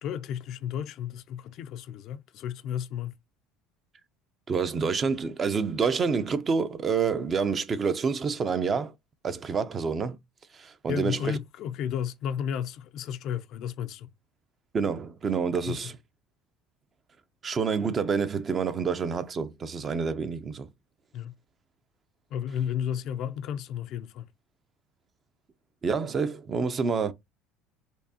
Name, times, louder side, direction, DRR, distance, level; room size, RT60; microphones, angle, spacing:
voice 1, 0.0-3.2 10.9-14.1 15.7-15.9 21.1-21.4 22.3-24.3, left 9 dB, 55° left, 0.4 m, -33 dB
voice 2, 4.5-8.9 9.2-10.2 10.5-11.4 14.7-15.9 17.4-20.7 25.8-27.1, right 5 dB, 30° right, 0.5 m, -28 dB
4.5 x 2.7 x 2.7 m
supercardioid pair, 115°, 0 cm